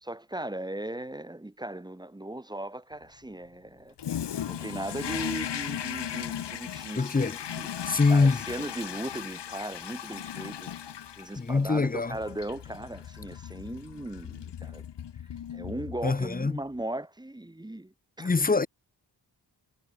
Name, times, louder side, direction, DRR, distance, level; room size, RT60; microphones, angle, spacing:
voice 1, 0.0-3.9 4.4-14.8 15.5-18.3, right 1 dB, 10° right, 1.1 m, -38 dB
Toilet flush, 4.0-16.3, left 9 dB, 70° left, 1.0 m, -37 dB
voice 2, 7.0-7.4 7.9-8.4 11.4-12.2 16.0-16.5 18.2-18.7, left 4 dB, 20° left, 0.7 m, -24 dB
wide cardioid pair, 85°, 43 cm